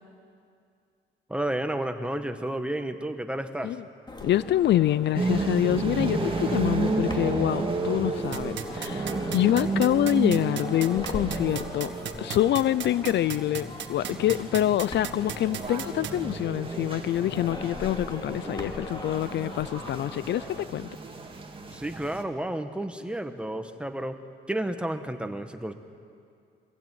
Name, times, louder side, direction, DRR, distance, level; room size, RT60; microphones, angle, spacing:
voice 1, 1.3-3.8 21.7-24.2 24.5-25.7, right 1 dB, 5° right, 1.5 m, -31 dB
sound 1, 4.1-20.6, left 2 dB, 20° left, 2.7 m, -40 dB
voice 2, 4.2-11.9 12.2-20.9, left 12 dB, 65° left, 0.4 m, -26 dB
sound 2, 5.2-22.2, right 3 dB, 25° right, 2.4 m, -32 dB
sound 3, 8.3-16.1, right 10 dB, 65° right, 1.5 m, -34 dB
23.5 x 16.0 x 9.3 m
cardioid pair, 90°, 20 cm